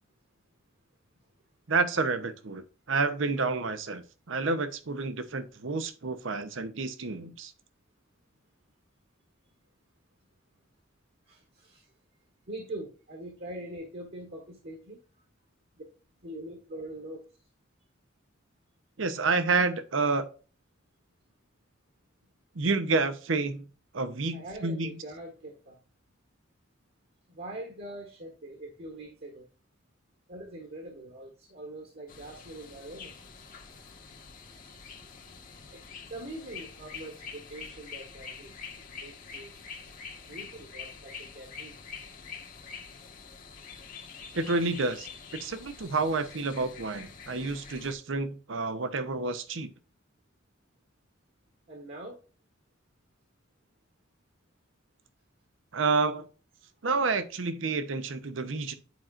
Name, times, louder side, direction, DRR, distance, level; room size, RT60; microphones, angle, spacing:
voice 1, 1.7-7.5 19.0-20.3 22.6-23.7 23.9-24.9 44.3-45.1 45.4-49.7 55.7-56.3 56.8-58.7, right 3 dB, 80° right, 11 dB, 0.8 m, -29 dB
voice 2, 11.3-11.9 12.5-15.0 15.8-15.9 16.2-17.2 24.3-25.8 27.3-29.5 30.3-33.1 35.7-35.8 36.1-38.5 38.9-39.5 40.3-41.8 51.7-52.2, right 1 dB, 55° right, 2 dB, 1.6 m, -43 dB
sound 1, 32.1-47.9, left 5 dB, 45° left, 1.2 m, -46 dB
10.5 x 4.4 x 2.5 m, 0.36 s
head